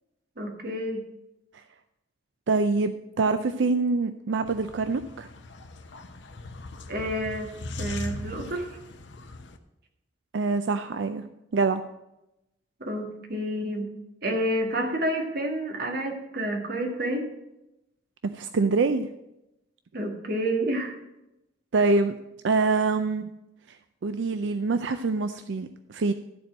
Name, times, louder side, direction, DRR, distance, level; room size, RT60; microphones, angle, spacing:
voice 1, 0.4-1.0 6.9-7.5 7.8-8.8 12.8-13.9 14.2-17.3 19.9-21.0, right 1 dB, 60° right, 2 dB, 1.8 m, -29 dB
voice 2, 2.5-5.3 10.3-11.2 11.5-11.8 18.4-19.1 21.7-22.1 22.4-23.3 24.0-26.1, right 3 dB, 90° right, 9 dB, 0.5 m, -25 dB
sound 1, 4.5-9.6, left 1 dB, 80° left, 0.9 m, -39 dB
13.5 x 4.5 x 7.6 m, 0.91 s
head